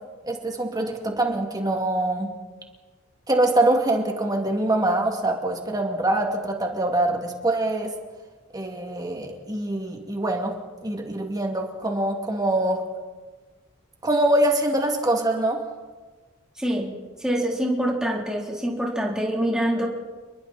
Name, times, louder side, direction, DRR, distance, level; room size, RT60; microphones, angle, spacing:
voice 1, 0.2-2.3 3.3-7.9 8.5-10.5 10.8-12.8 14.0-15.6, right 1 dB, 20° right, 2 dB, 2.7 m, -24 dB
voice 2, 16.6-16.9 17.2-19.9, equal, 5° right, -2 dB, 3.7 m, -25 dB
29.0 x 22.0 x 4.4 m, 1.4 s
head